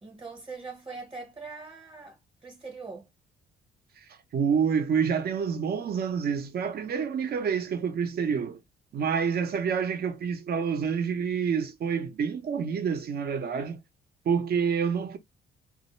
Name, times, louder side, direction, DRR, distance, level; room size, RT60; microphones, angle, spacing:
voice 1, 0.0-2.2 2.4-3.1, right 4 dB, 30° right, 0.9 m, -42 dB
voice 2, 4.3-8.6 8.9-13.8 14.2-15.2, right 6 dB, 50° right, 0.7 m, -28 dB
2.1 x 2.0 x 2.9 m
cardioid pair, 90°, 20 cm